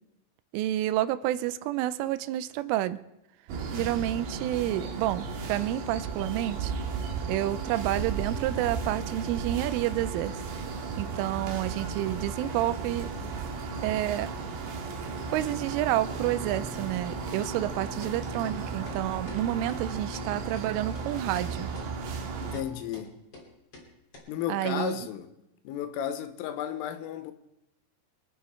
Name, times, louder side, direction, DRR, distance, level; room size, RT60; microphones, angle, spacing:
voice 1, 0.5-3.0 3.7-6.7 7.3-10.4 11.0-13.1 13.8-14.3 15.3-21.7 24.5-25.1, right 14 dB, 85° right, 3.2 m, -29 dB
sound 1, 3.5-22.8, left 2 dB, 65° left, 5.7 m, -45 dB
sound 2, 3.5-22.6, right 5 dB, 70° right, 3.3 m, -35 dB
sound 3, 17.6-17.7 18.0-18.1 18.4-18.6 18.9-19.0 19.3-19.4 19.7-19.8 20.1-20.3 20.6-20.7 20.9-21.0 21.4-21.5 21.7-21.9 22.2-22.3 22.5-22.7 22.9-23.1 23.3-23.5 23.7-23.9 24.1-24.2, left 3 dB, 35° left, 3.6 m, -47 dB
voice 2, 22.4-23.1 24.3-25.3 25.7-27.3, left 10 dB, 90° left, 3.6 m, -33 dB
26.0 x 9.3 x 4.4 m
omnidirectional pair, 5.6 m